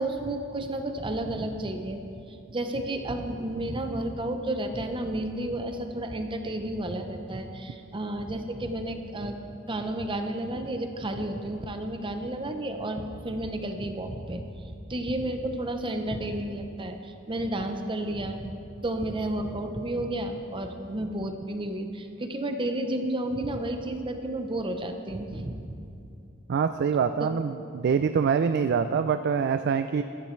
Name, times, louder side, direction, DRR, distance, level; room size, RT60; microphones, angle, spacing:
voice 1, 0.0-2.0 2.5-9.4 9.7-14.6 14.9-18.5 18.8-25.6 27.2-27.3, right 1 dB, 25° right, 6 dB, 0.7 m, -31 dB
voice 2, 26.5-30.0, right 6 dB, 55° right, 9 dB, 0.3 m, -25 dB
15.0 x 12.0 x 3.2 m, 2.5 s
head